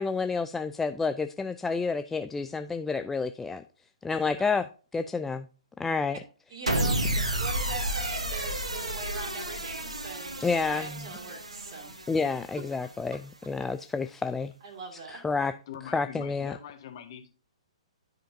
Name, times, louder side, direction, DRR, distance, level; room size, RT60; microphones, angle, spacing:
voice 1, 0.0-3.6 4.0-4.7 4.9-5.5 5.8-6.2 10.4-10.9 12.1-14.5 15.1-15.5 15.9-16.5, left 4 dB, 10° left, 0.3 m, -29 dB
voice 2, 4.1-4.5 6.5-12.0 14.6-15.2, right 3 dB, 40° right, 2.3 m, -41 dB
sound 1, 6.7-13.0, right 1 dB, 75° right, 1.3 m, -32 dB
voice 3, 15.7-17.3, left 9 dB, 45° left, 1.7 m, -43 dB
12.0 x 5.0 x 2.7 m
figure-of-eight pair, 120°, 3 cm